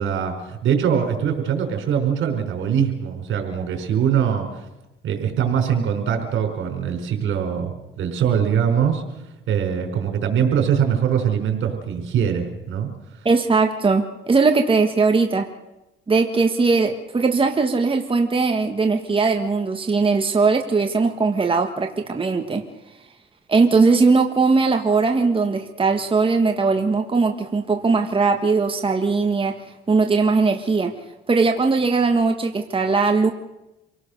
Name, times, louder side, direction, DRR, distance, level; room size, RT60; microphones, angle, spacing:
voice 1, 0.0-4.6 5.0-9.2 9.5-12.9, right 8 dB, 75° right, 4 dB, 4.7 m, -22 dB
voice 2, 13.2-15.5 16.1-22.6 23.5-29.6 29.9-30.9 31.3-33.3, right 4 dB, 25° right, 4 dB, 1.5 m, -19 dB
27.0 x 18.0 x 6.6 m, 1.0 s
cardioid pair, 90°, 20 cm